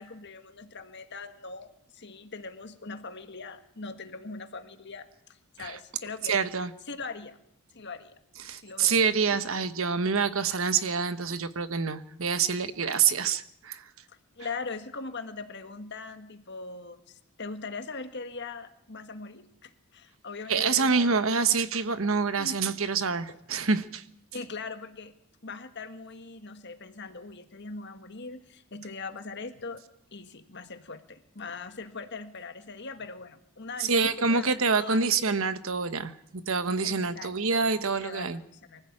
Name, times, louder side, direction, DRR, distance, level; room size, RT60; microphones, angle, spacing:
voice 1, 0.0-5.1 5.5-6.4 6.9-7.4 7.7-8.2 8.6-9.1 14.1-21.2 22.4-23.0 23.3-23.4 24.3-25.1 25.4-29.8 30.1-35.3 36.8-37.7 38.0-38.8, left 4 dB, 50° left, 8 dB, 1.8 m, -41 dB
voice 2, 6.3-6.7 8.4-13.8 20.5-24.0 33.8-38.4, right 5 dB, 65° right, 12 dB, 1.2 m, -26 dB
24.5 x 15.0 x 8.8 m, 0.72 s
head